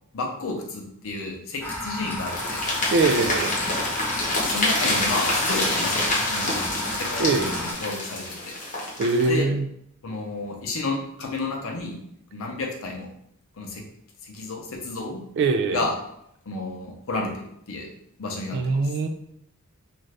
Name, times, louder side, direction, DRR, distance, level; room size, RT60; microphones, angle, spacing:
voice 1, 0.1-2.6 4.4-7.5 7.8-8.5 9.3-9.5 10.0-12.0 12.3-13.1 13.6-13.8 14.2-15.2 15.7-15.9 16.5-17.9 18.2-18.8, left 3 dB, 65° left, 1 dB, 0.6 m, -31 dB
sound 1, 1.6-7.7, left 1 dB, 10° left, 0.5 m, -32 dB
sound 2, 2.2-9.4, left 2 dB, 35° left, 0.8 m, -27 dB
voice 2, 2.9-3.5 7.2-7.5 9.0-9.7 15.4-15.9 18.5-19.1, right 3 dB, 55° right, 7 dB, 0.3 m, -22 dB
2.6 x 2.4 x 3.2 m, 0.73 s
head